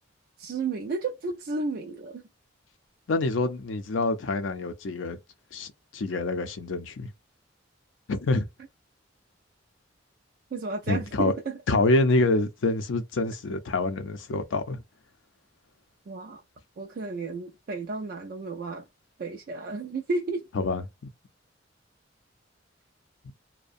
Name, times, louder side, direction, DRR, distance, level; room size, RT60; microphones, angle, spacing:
voice 1, 0.4-2.2 10.5-11.6 16.1-16.4 16.8-18.9 19.2-20.4, right 3 dB, 50° right, 0.4 m, -32 dB
voice 2, 3.1-5.2 5.5-7.1 8.1-8.5 10.9-11.3 11.7-14.8 20.5-20.8, left 2 dB, 85° left, 0.5 m, -26 dB
2.6 x 2.1 x 2.4 m
head